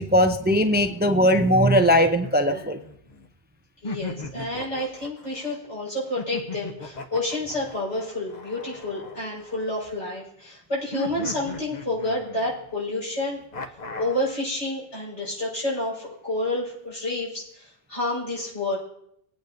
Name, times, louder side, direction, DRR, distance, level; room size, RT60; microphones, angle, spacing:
voice 1, 0.0-2.8, equal, 15° right, 7 dB, 0.3 m, -19 dB
sound 1, 2.2-3.3 3.8-5.6 6.2-9.9 10.9-12.7 13.5-14.3, left 2 dB, 45° left, 0.8 m, -38 dB
voice 2, 3.8-13.4 14.0-18.8, left 1 dB, 80° left, -6 dB, 5.3 m, -29 dB
21.5 x 8.9 x 2.6 m, 0.75 s
omnidirectional pair, 1.2 m